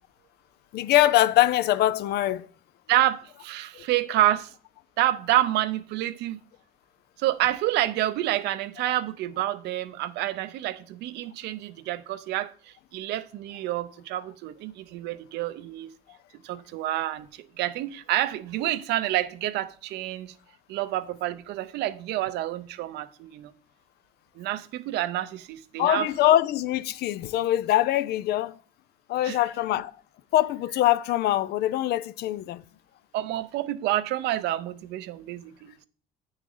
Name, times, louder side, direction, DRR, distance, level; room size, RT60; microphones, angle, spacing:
voice 1, 0.7-2.5 3.7-3.9 25.8-28.6 29.1-30.0 30.3-32.6, left 14 dB, 75° left, 0.5 m, -23 dB
voice 2, 2.9-4.5 5.0-6.4 7.2-15.9 16.4-20.3 20.7-23.5 24.4-26.1 29.2-29.4 33.1-35.9, right 14 dB, 80° right, 0.6 m, -28 dB
9.0 x 6.4 x 3.8 m
cardioid pair, 110°, 17 cm